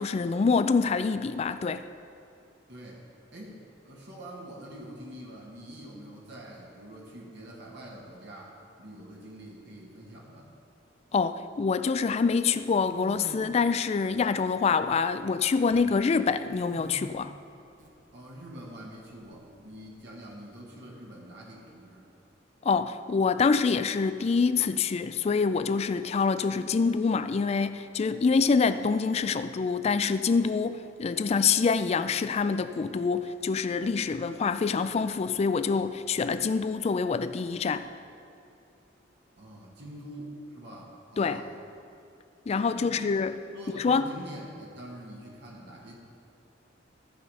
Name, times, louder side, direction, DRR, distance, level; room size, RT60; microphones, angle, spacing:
voice 1, 0.0-1.8 11.1-17.3 22.6-37.9 41.2-41.4 42.5-43.3 43.7-44.1, left 5 dB, 35° left, 12 dB, 0.3 m, -26 dB
voice 2, 2.7-10.5 18.1-22.0 39.3-41.6 42.7-43.1 43.5-46.0, right 1 dB, 60° right, -2 dB, 1.4 m, -45 dB
sound 1, 12.0-13.4 14.0-14.6 14.9-15.9 16.5-17.1 17.7-17.9 19.0-20.0, right 1 dB, 45° right, 1.0 m, -48 dB
14.0 x 5.0 x 5.4 m, 2.6 s
head